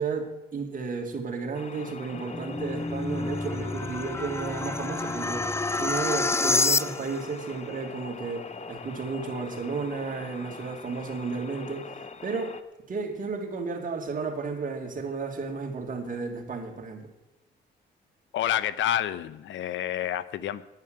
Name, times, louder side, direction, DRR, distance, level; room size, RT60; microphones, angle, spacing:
voice 1, 0.0-5.5 5.8-12.5 12.9-17.1, right 4 dB, 40° right, 2 dB, 2.7 m, -33 dB
sound 1, 1.5-12.6, left 5 dB, 35° left, 0.9 m, -43 dB
sound 2, 2.1-7.3, left 3 dB, 15° left, 0.4 m, -28 dB
voice 2, 18.3-20.6, left 11 dB, 75° left, 17 dB, 0.7 m, -28 dB
10.0 x 9.5 x 7.8 m, 0.97 s
cardioid pair, 90°, 20 cm